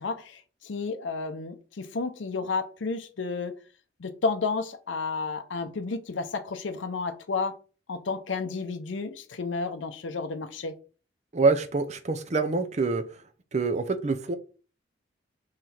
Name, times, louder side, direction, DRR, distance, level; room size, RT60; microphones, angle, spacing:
voice 1, 0.0-3.5 4.0-7.6 7.9-10.7, left 4 dB, 85° left, 9 dB, 0.6 m, -31 dB
voice 2, 11.3-13.2 13.5-14.4, right 3 dB, 40° right, 9 dB, 0.5 m, -26 dB
3.9 x 3.1 x 4.3 m, 0.36 s
head